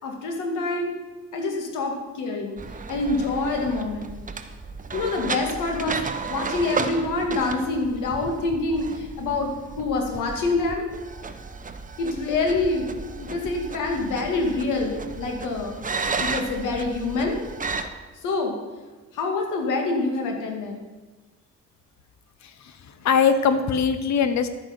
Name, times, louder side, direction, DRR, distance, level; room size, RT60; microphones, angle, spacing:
voice 1, 0.0-0.9 1.3-2.6 2.9-4.1 4.9-6.0 6.3-10.9 12.0-12.9 13.2-15.8 16.2-17.4 18.2-18.6 19.1-20.8, left 3 dB, 90° left, 3 dB, 2.3 m, -26 dB
sound 1, 2.6-17.9, right 4 dB, 25° right, 1.0 m, -34 dB
voice 2, 22.4-24.5, left 6 dB, 65° left, 11 dB, 1.2 m, -22 dB
11.5 x 9.2 x 6.0 m, 1.2 s
cardioid pair, 90°, 30 cm